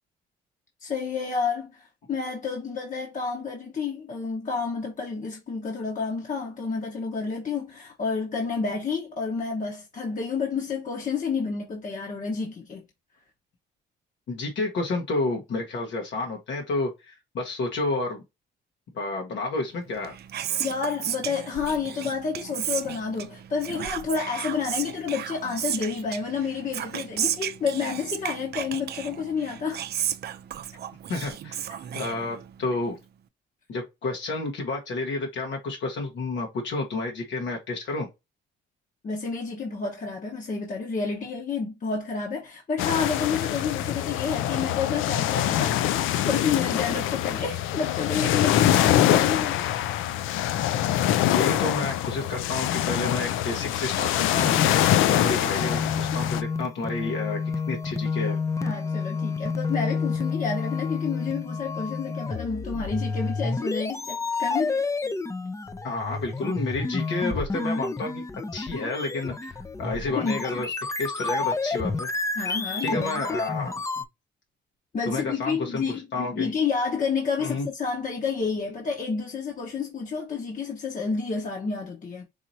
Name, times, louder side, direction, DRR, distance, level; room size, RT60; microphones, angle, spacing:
voice 1, 0.8-12.9 20.6-29.8 39.0-45.8 46.2-49.7 50.3-50.4 58.6-64.8 70.1-70.5 72.4-73.2 74.9-76.0 76.3-82.3, left 5 dB, 40° left, 1.1 m, -30 dB
voice 2, 14.3-18.2 18.9-20.1 31.1-31.6 31.9-32.9 33.7-38.1 51.3-54.6 55.1-57.4 57.7-58.4 65.8-68.2 68.5-70.7 71.0-72.1 72.8-74.0 75.0-75.8 76.1-76.5 77.4-77.7, left 3 dB, 70° left, 1.3 m, -30 dB
Whispering, 19.9-32.7, right 10 dB, 55° right, 0.5 m, -34 dB
sound 1, 42.8-56.4, left 12 dB, 90° left, 0.4 m, -24 dB
sound 2, 54.4-74.0, left 4 dB, 15° left, 0.4 m, -30 dB
4.7 x 3.0 x 2.7 m
cardioid pair, 90°, 20 cm